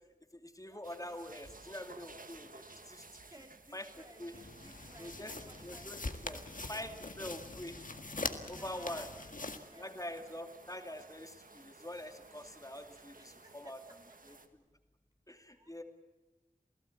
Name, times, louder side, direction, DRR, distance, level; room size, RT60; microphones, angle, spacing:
voice 1, 0.4-3.0 3.7-4.3 5.0-5.4 5.6-6.4 6.7-7.8 8.5-9.1 9.8-13.8 15.3-15.8, left 1 dB, 25° left, 5 dB, 2.6 m, -45 dB
sound 1, 0.8-14.5, right 3 dB, 75° right, 1.8 m, -56 dB
voice 2, 3.3-6.6 8.3-9.3 9.7-10.0 13.1-14.4 15.6-15.7, right 1 dB, 25° right, 4 dB, 2.5 m, -59 dB
sound 2, 4.3-9.6, left 3 dB, 70° left, 1.8 m, -43 dB
28.5 x 16.5 x 8.6 m, 1.1 s
wide cardioid pair, 60°, 14 cm